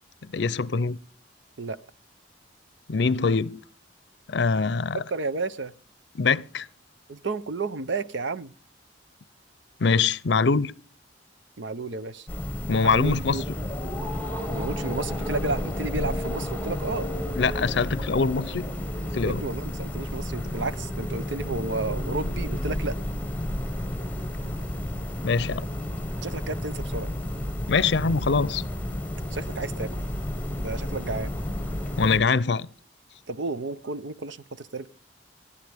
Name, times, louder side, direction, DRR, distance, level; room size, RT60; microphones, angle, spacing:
voice 1, 0.3-1.0 2.9-3.6 4.3-5.0 6.1-6.7 9.8-10.7 12.7-13.4 17.4-18.7 19.1-19.4 25.2-25.7 27.7-28.6 32.0-32.7, left 4 dB, 65° left, 0.6 m, -23 dB
voice 2, 4.9-5.7 7.1-8.5 11.6-12.3 12.8-13.4 14.5-17.1 19.2-23.0 26.2-27.1 29.3-29.9 30.6-31.3 33.3-34.9, right 3 dB, 80° right, 0.7 m, -32 dB
sound 1, 12.3-32.2, left 1 dB, 10° left, 1.4 m, -31 dB
26.5 x 9.9 x 3.5 m
head